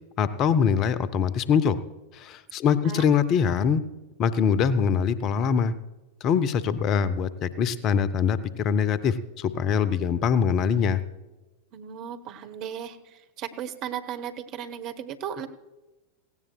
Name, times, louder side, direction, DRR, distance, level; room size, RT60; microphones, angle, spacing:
voice 1, 0.2-1.8 2.1-3.8 4.2-5.7 6.2-11.0, left 7 dB, 35° left, 15 dB, 0.6 m, -23 dB
voice 2, 11.7-15.5, right 9 dB, 40° right, 7 dB, 1.1 m, -36 dB
17.5 x 16.5 x 2.3 m, 1.1 s
figure-of-eight pair, 90°, 0 cm